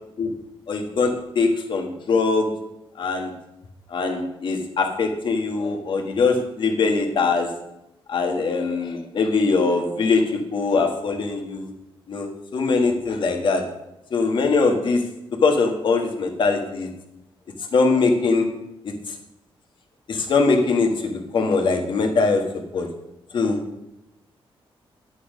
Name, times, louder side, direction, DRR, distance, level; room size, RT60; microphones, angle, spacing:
voice 1, 0.7-2.5 3.0-3.3 3.9-7.5 8.1-10.2 10.5-11.7 12.1-13.6 14.1-15.0 15.4-16.9 17.7-18.5 18.8-19.1 20.1-22.4 22.7-22.9 23.3-23.6, left 4 dB, 55° left, 4 dB, 1.7 m, -22 dB
10.5 x 8.4 x 5.2 m, 0.89 s
wide cardioid pair, 170°, 10 cm